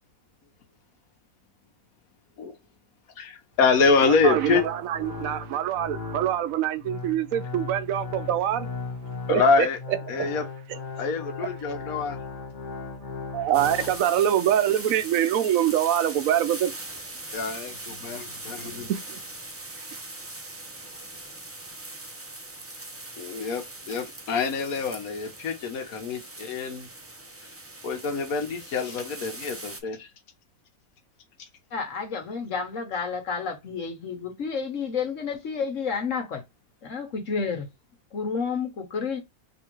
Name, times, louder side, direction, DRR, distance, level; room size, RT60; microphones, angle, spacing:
voice 1, 3.2-4.7 9.3-9.8 10.1-10.5 11.0-12.2 17.3-18.9 23.2-26.9 27.8-30.1, left 4 dB, 85° left, 1.4 m, -25 dB
sound 1, 3.6-14.0, left 4 dB, 40° left, 1.1 m, -37 dB
voice 2, 4.0-8.7 9.3-9.7 10.2-10.3 13.3-16.7 18.6-19.2, right 11 dB, 75° right, 1.0 m, -25 dB
sound 2, 13.5-29.8, right 2 dB, 20° right, 0.3 m, -41 dB
voice 3, 31.7-36.4 36.8-37.7 38.1-39.2, left 5 dB, 65° left, 1.5 m, -30 dB
3.7 x 2.8 x 4.5 m
omnidirectional pair, 1.5 m